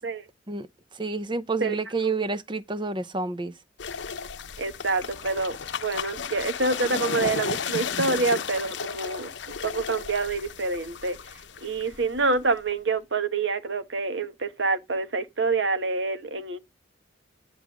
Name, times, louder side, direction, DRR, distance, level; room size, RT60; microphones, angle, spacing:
voice 1, 0.9-3.5, right 3 dB, 25° right, 0.7 m, -29 dB
sound 1, 3.8-12.7, left 6 dB, 65° left, 0.8 m, -34 dB
voice 2, 4.6-9.3 9.6-11.2 11.6-16.6, right 3 dB, 65° right, 1.2 m, -27 dB
10.0 x 3.4 x 6.2 m
head